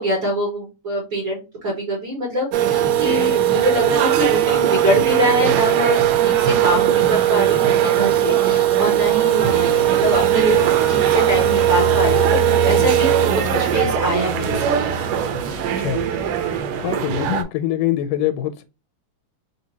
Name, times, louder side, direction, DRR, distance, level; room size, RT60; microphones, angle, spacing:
voice 1, 0.0-13.2 13.5-14.8, equal, 45° right, 2.0 m, -24 dB
sound 1, 2.5-17.4, right 11 dB, 85° right, 2.3 m, -19 dB
sound 2, 9.4-16.6, equal, 25° right, 0.6 m, -29 dB
voice 2, 16.8-18.7, left 12 dB, 85° left, 2.1 m, -23 dB
5.1 x 2.8 x 2.8 m
omnidirectional pair, 3.7 m